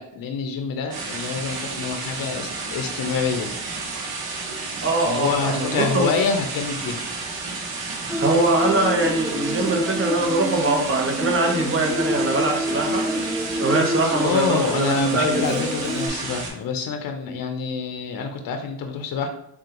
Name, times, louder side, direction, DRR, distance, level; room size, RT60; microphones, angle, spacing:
voice 1, 0.0-3.5 5.0-7.0 14.2-19.3, left 5 dB, 70° left, 5 dB, 0.5 m, -26 dB
sound 1, 0.9-16.5, right 3 dB, 85° right, 0.9 m, -32 dB
voice 2, 4.8-6.1 8.2-13.0 13.6-15.4, right 2 dB, 35° right, 1 dB, 0.8 m, -22 dB
Human voice, 8.1-16.1, equal, ahead, 0.4 m, -28 dB
3.4 x 2.3 x 2.9 m, 0.76 s
cardioid pair, 85°, 36 cm